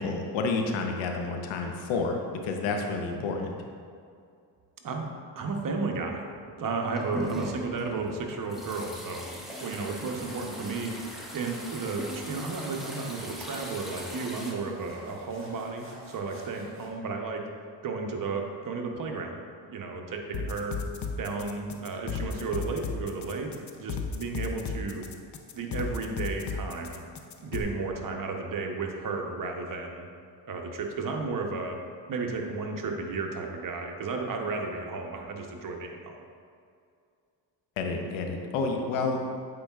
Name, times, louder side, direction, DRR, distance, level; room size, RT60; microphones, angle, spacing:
voice 1, 0.0-3.5 37.8-39.2, left 3 dB, 90° left, 3 dB, 0.8 m, -30 dB
voice 2, 5.4-6.3 6.6-9.3 9.6-10.9 11.3-17.4 17.8-20.8 21.2-23.5 23.8-25.0 25.5-27.0 27.4-30.1 30.5-31.8 32.1-36.1, right 4 dB, 45° right, 2 dB, 0.9 m, -33 dB
sound 1, 6.7-14.5, equal, ahead, 1.1 m, -40 dB
sound 2, 9.3-16.9, right 2 dB, 30° right, 1.3 m, -50 dB
sound 3, 20.3-27.6, left 5 dB, 40° left, 0.6 m, -34 dB
8.7 x 4.6 x 2.4 m, 2.3 s
cardioid pair, 85°, 44 cm